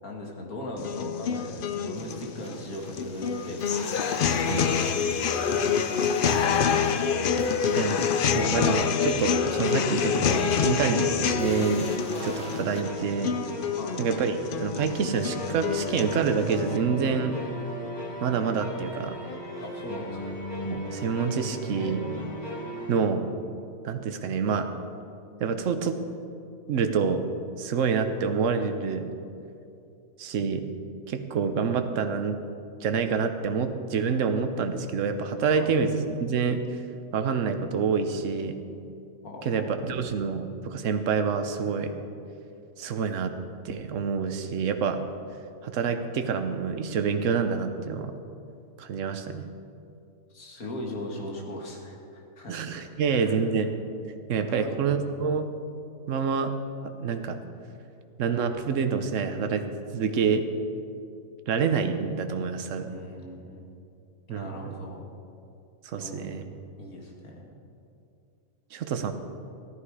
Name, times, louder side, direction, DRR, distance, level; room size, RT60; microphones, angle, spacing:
voice 1, 0.0-3.6 4.2-6.8 13.8-14.0 19.6-20.4 35.5-35.7 39.2-39.9 50.3-52.5 52.8-53.5 54.5-55.0 62.9-63.7 64.3-65.1 66.0-66.4 66.8-67.5, left 1 dB, 80° left, 0 dB, 2.4 m, -39 dB
sound 1, 0.8-16.8, left 7 dB, 60° left, 0.6 m, -27 dB
sound 2, 1.9-12.8, equal, 5° left, 1.9 m, -45 dB
sound 3, 6.1-23.0, left 1 dB, 30° left, 1.8 m, -37 dB
voice 2, 7.7-11.9 12.2-13.4 14.0-17.4 18.2-19.2 20.6-22.0 22.9-23.3 23.8-24.7 25.4-26.0 26.7-27.3 27.6-29.1 30.2-30.7 31.1-32.4 32.8-36.8 37.1-38.6 39.4-41.9 42.8-43.3 43.6-45.0 45.6-48.1 48.8-49.5 52.5-53.8 54.3-55.5 56.1-56.6 56.8-57.4 58.2-59.7 59.9-60.5 61.5-62.9 64.3-64.7 65.8-66.4 68.7-69.1, right 5 dB, 65° right, 7 dB, 1.2 m, -27 dB
15.0 x 13.0 x 4.9 m, 2.6 s
omnidirectional pair, 1.5 m